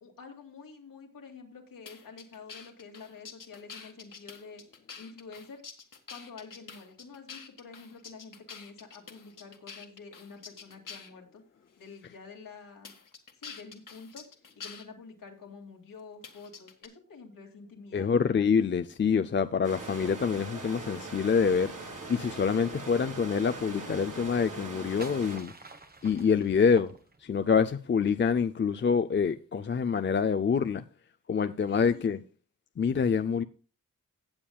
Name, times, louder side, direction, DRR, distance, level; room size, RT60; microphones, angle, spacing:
voice 1, 0.0-4.6 5.0-5.6 6.1-11.4 11.8-12.9 13.3-14.2 14.6-18.1 31.7-32.2, left 4 dB, 90° left, 2.4 m, -48 dB
sound 1, 1.9-11.2 11.9-12.0 12.8-14.8 16.2-16.9, left 6 dB, 70° left, 1.8 m, -47 dB
voice 2, 17.9-25.5 26.0-26.9 27.2-30.8 31.3-32.2 32.8-33.4, left 6 dB, 35° left, 0.5 m, -26 dB
sound 2, 19.6-25.4, right 3 dB, 65° right, 4.5 m, -41 dB
sound 3, 24.7-27.5, right 3 dB, 30° right, 1.1 m, -49 dB
17.5 x 7.3 x 2.3 m
wide cardioid pair, 85°, 33 cm